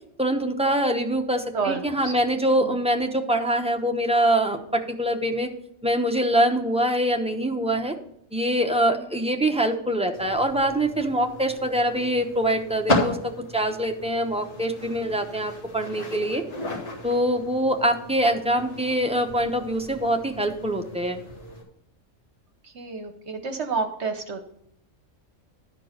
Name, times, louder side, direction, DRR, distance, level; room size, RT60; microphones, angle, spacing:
voice 1, 0.2-5.5 5.8-7.9 8.3-16.4 17.0-21.2, right 1 dB, 5° right, 3 dB, 0.7 m, -24 dB
voice 2, 1.5-2.1 2.6-2.8 8.9-9.1 22.6-24.4, right 4 dB, 60° right, 6 dB, 1.1 m, -30 dB
sound 1, 10.1-21.6, left 2 dB, 50° left, 2.5 m, -34 dB
12.0 x 4.6 x 6.4 m, 0.74 s
omnidirectional pair, 1.4 m